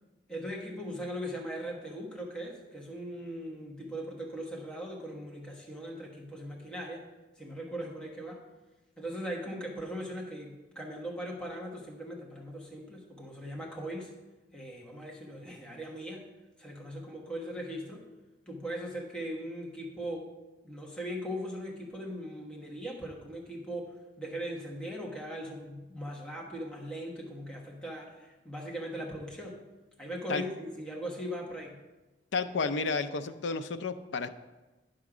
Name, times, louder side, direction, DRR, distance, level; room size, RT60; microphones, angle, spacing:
voice 1, 0.3-7.1 7.4-8.4 9.0-14.1 14.5-16.2 16.6-18.1 18.5-20.3 20.6-29.6 30.0-31.8, equal, 5° left, -2 dB, 1.2 m, -39 dB
voice 2, 32.3-34.3, left 4 dB, 90° left, 9 dB, 0.5 m, -31 dB
9.3 x 6.3 x 4.9 m, 1.1 s
head